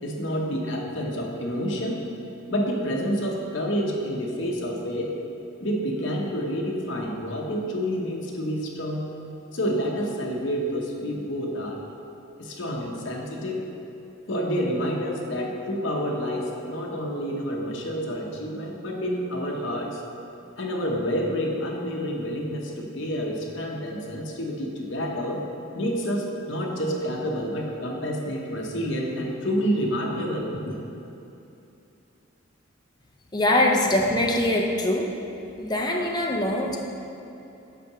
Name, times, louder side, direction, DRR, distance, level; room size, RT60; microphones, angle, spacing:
voice 1, 0.0-2.0 2.5-5.1 5.6-9.1 9.5-11.8 12.4-13.6 14.3-20.0 20.6-25.4 25.7-30.7, equal, 65° left, -1 dB, 1.0 m, -28 dB
voice 2, 33.3-35.1 35.6-36.8, left 1 dB, 20° left, 1 dB, 0.6 m, -23 dB
5.9 x 4.6 x 6.1 m, 2.8 s
head